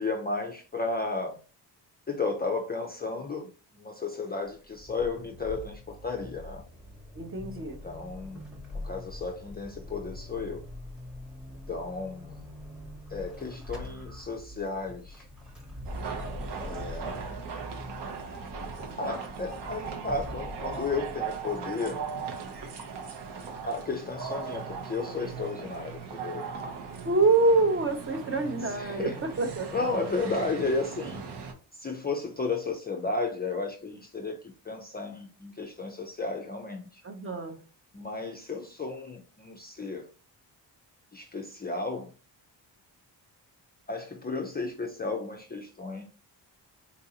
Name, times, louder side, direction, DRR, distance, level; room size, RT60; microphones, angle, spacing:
voice 1, 0.0-1.4 2.1-6.6 7.5-8.4 8.8-10.6 11.7-12.4 13.1-15.3 16.5-17.4 19.0-22.0 23.5-26.5 28.6-29.2 29.7-31.3 31.7-37.0 37.9-40.1 41.1-42.1 43.9-46.0, left 3 dB, 25° left, 2 dB, 0.4 m, -33 dB
Vehicle / Accelerating revving vroom / Squeak, 4.4-21.7, left 1 dB, ahead, 0.8 m, -43 dB
voice 2, 7.2-7.8 27.0-29.1 29.4-29.9 37.0-37.6, right 3 dB, 30° right, 5 dB, 0.6 m, -26 dB
sound 1, 15.8-31.5, right 6 dB, 70° right, 0.8 m, -39 dB
4.0 x 2.5 x 2.7 m, 0.35 s
wide cardioid pair, 135°, 43 cm